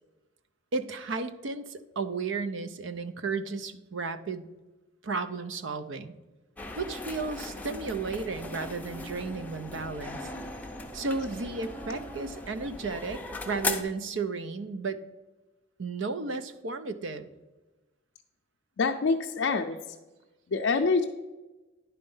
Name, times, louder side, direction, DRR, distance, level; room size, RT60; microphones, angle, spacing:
voice 1, 0.7-4.5 5.0-6.1 6.8-10.3 10.9-15.0 15.8-17.3, right 4 dB, 65° right, 11 dB, 0.6 m, -34 dB
sound 1, 6.6-13.8, left 2 dB, 10° left, 0.5 m, -38 dB
voice 2, 18.8-19.9 20.5-21.0, left 4 dB, 65° left, 2 dB, 0.5 m, -26 dB
10.5 x 4.4 x 5.5 m, 1.1 s
head